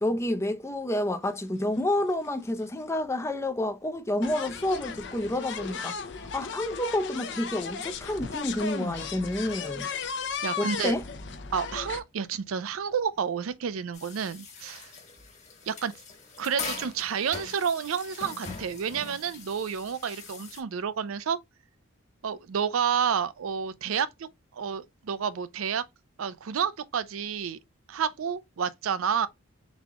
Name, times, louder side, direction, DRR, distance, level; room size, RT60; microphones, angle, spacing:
voice 1, 0.0-6.0 6.3-9.9 10.6-11.0, left 1 dB, 15° left, 0.4 m, -29 dB
sound 1, 1.7-1.8 2.0-2.3 3.2-3.3 4.2-12.0, left 6 dB, 55° left, 0.6 m, -36 dB
voice 2, 10.4-11.0 11.5-14.9 15.7-15.9 16.4-21.4 22.2-24.3 24.5-25.8 26.2-27.6 27.9-29.3, right 7 dB, 85° right, 0.4 m, -30 dB
sound 2, 13.9-20.6, left 4 dB, 35° left, 1.3 m, -41 dB
4.0 x 3.6 x 2.8 m
head